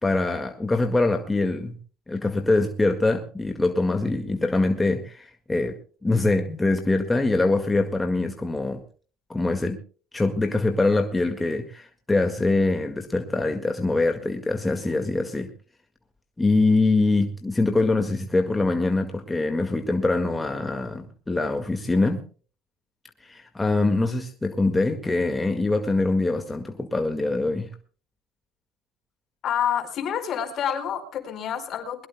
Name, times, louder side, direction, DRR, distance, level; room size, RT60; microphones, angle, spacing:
voice 1, 0.0-1.8 2.1-5.7 6.0-8.8 9.3-9.8 10.1-15.5 16.4-22.2 23.2-27.7, left 2 dB, 15° left, 5 dB, 1.8 m, -24 dB
voice 2, 29.4-32.1, left 9 dB, 50° left, 7 dB, 4.6 m, -28 dB
21.5 x 21.0 x 2.2 m, 0.39 s
supercardioid pair, 85°, 0 cm